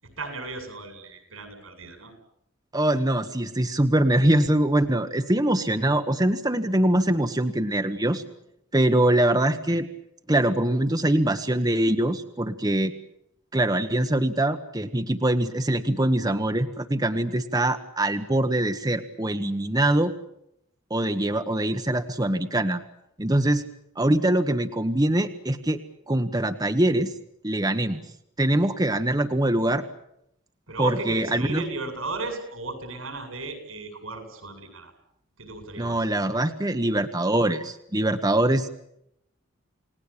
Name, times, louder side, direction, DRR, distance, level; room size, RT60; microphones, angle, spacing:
voice 1, 0.0-2.1 30.7-34.9 35.4-36.0, right 3 dB, 85° right, 7 dB, 7.7 m, -35 dB
voice 2, 2.7-8.2 8.7-9.9 10.3-12.9 13.5-20.1 20.9-22.8 23.2-23.6 24.0-25.8 26.1-27.1 27.4-28.0 28.4-29.8 30.8-31.6 35.8-38.7, right 1 dB, 20° right, 7 dB, 1.1 m, -23 dB
29.5 x 19.0 x 8.7 m, 0.78 s
head